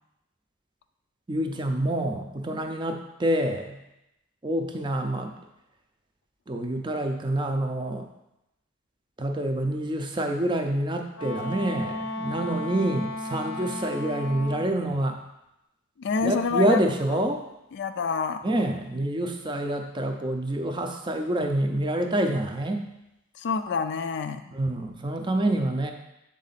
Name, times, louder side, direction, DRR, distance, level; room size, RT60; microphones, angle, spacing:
voice 1, 1.3-3.8 4.4-5.4 6.5-8.1 9.2-15.2 16.2-17.4 18.4-22.9 24.5-25.9, right 1 dB, 20° right, 4 dB, 0.5 m, -27 dB
Wind instrument woodwind instrument, 11.1-14.8, left 1 dB, 80° left, 0.6 m, -34 dB
voice 2, 16.0-16.8 17.7-18.4 23.4-24.4, left 5 dB, 50° left, 9 dB, 0.3 m, -27 dB
7.2 x 3.7 x 4.1 m, 0.89 s
head